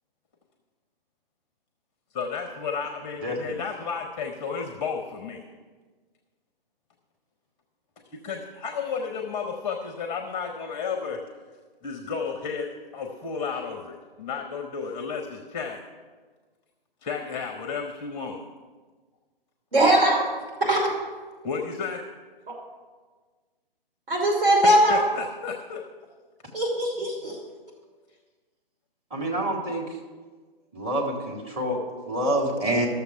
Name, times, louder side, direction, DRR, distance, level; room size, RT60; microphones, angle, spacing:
voice 1, 2.1-5.4 8.2-11.2 11.8-15.8 17.0-18.4 21.4-22.0 24.6-25.8, left 5 dB, 15° left, 4 dB, 0.6 m, -32 dB
voice 2, 3.2-3.6 29.1-30.0 30.7-32.9, right 1 dB, 20° right, -1 dB, 1.9 m, -27 dB
voice 3, 19.7-20.2 20.6-20.8 24.1-25.0 26.5-27.4, right 1 dB, 65° right, -1 dB, 2.8 m, -20 dB
13.0 x 6.9 x 5.5 m, 1.4 s
figure-of-eight pair, 135°, 29 cm